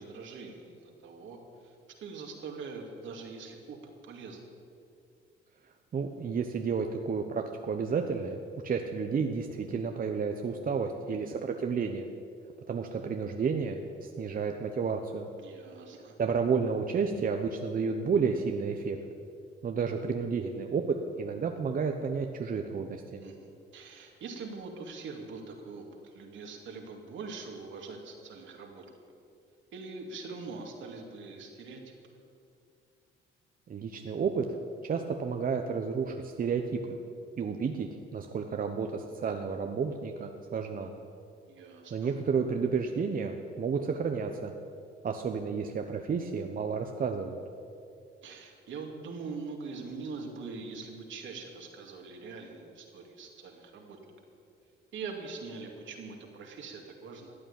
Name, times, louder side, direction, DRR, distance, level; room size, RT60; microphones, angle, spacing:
voice 1, 0.0-4.4 15.4-16.2 23.2-28.8 29.7-32.0 41.4-42.1 48.2-54.0 54.9-57.4, right 4 dB, 75° right, 2 dB, 2.5 m, -43 dB
voice 2, 5.9-12.0 12.7-15.3 16.2-19.0 19.6-20.8 21.2-23.2 33.7-34.4 34.8-37.0 37.4-40.9 41.9-44.5 45.0-47.4, right 5 dB, 45° right, 4 dB, 0.9 m, -31 dB
14.0 x 9.0 x 8.8 m, 2.5 s
cardioid pair, 90°, 20 cm